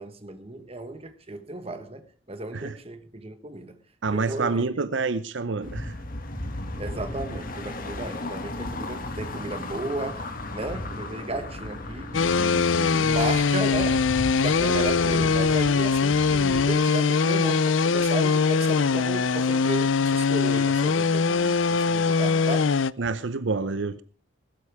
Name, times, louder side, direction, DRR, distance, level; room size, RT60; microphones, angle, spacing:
voice 1, 0.0-3.8 4.1-4.7 6.8-14.1 14.4-22.7, right 2 dB, 30° right, 1.5 m, -34 dB
voice 2, 4.0-6.0 23.0-24.0, right 4 dB, 75° right, 0.7 m, -27 dB
sound 1, 5.6-16.8, left 1 dB, 50° left, 2.1 m, -36 dB
sound 2, 12.1-22.9, left 5 dB, 90° left, 0.6 m, -22 dB
20.0 x 13.0 x 3.6 m
head